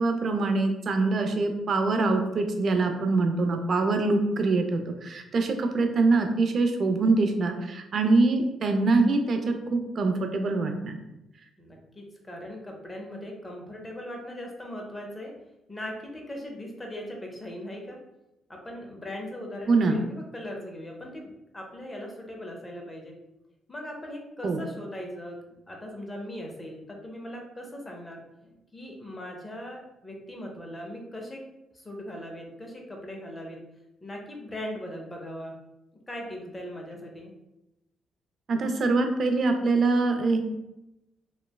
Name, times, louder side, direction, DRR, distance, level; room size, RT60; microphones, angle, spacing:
voice 1, 0.0-11.0 19.7-20.0 24.4-24.6 38.5-40.4, right 3 dB, 50° right, 5 dB, 0.4 m, -24 dB
voice 2, 11.6-15.3 15.7-18.0 18.5-23.1 23.7-31.4 31.7-33.6 34.0-35.6 36.1-37.3, left 1 dB, 20° left, 1 dB, 0.6 m, -39 dB
3.1 x 2.1 x 2.2 m, 0.90 s
cardioid pair, 90°, 0 cm